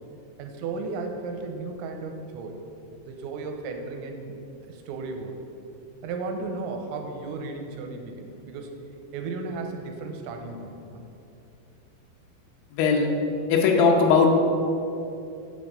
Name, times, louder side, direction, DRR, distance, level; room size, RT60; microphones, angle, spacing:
voice 1, 0.4-2.6 3.1-4.4 4.6-5.4 6.0-8.7 9.1-11.0, right 3 dB, 90° right, 4 dB, 3.0 m, -34 dB
voice 2, 12.7-13.1 13.5-14.3, left 5 dB, 90° left, 1 dB, 2.0 m, -19 dB
7.3 x 5.4 x 6.4 m, 2.7 s
omnidirectional pair, 5.3 m